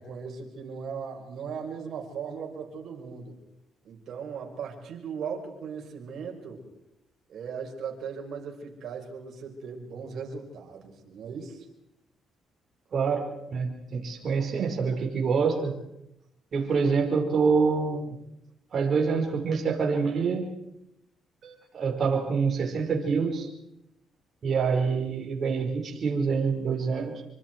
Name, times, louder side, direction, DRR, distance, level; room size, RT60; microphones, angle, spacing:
voice 1, 0.0-3.4 3.8-6.6 7.3-11.7, right 6 dB, 70° right, 1 dB, 5.6 m, -38 dB
voice 2, 12.9-15.8 16.5-18.2 18.7-20.5 21.4-23.5 24.4-27.2, right 5 dB, 50° right, 1 dB, 5.0 m, -26 dB
26.0 x 25.0 x 4.7 m, 0.84 s
cardioid pair, 90°, 0 cm